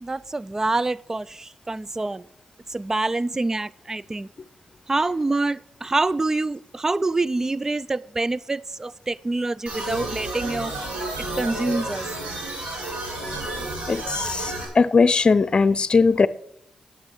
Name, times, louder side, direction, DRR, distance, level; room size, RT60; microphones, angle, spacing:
voice 1, 0.0-2.2 2.7-4.3 4.9-10.7 11.2-12.1, right 2 dB, 25° right, 0.3 m, -26 dB
sound 1, 9.7-14.7, right 2 dB, 85° right, 4.3 m, -31 dB
voice 2, 13.9-16.3, left 4 dB, 45° left, 0.6 m, -19 dB
9.2 x 8.8 x 6.4 m
cardioid pair, 60°, 2 cm